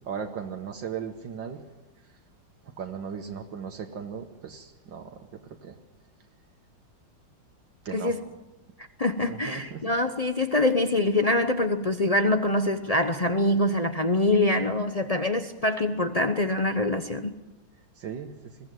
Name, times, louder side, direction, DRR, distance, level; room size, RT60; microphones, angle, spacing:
voice 1, 0.0-1.6 2.6-5.8 7.9-8.2 9.2-9.9 18.0-18.3, right 7 dB, 70° right, 1.9 m, -37 dB
voice 2, 9.0-17.3, left 2 dB, 60° left, 0.4 m, -24 dB
22.0 x 16.0 x 9.1 m
omnidirectional pair, 2.1 m